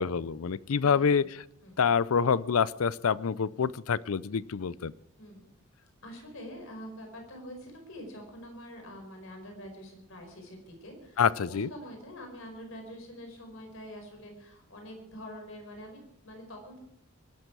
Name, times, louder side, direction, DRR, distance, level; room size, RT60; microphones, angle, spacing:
voice 1, 0.0-1.4 1.8-4.9 11.2-11.7, left 6 dB, 90° left, 20 dB, 0.5 m, -27 dB
voice 2, 0.8-1.3 1.6-1.8 5.2-5.5 6.0-16.8, equal, 70° left, 3 dB, 5.2 m, -45 dB
23.5 x 12.0 x 4.7 m, 0.75 s
head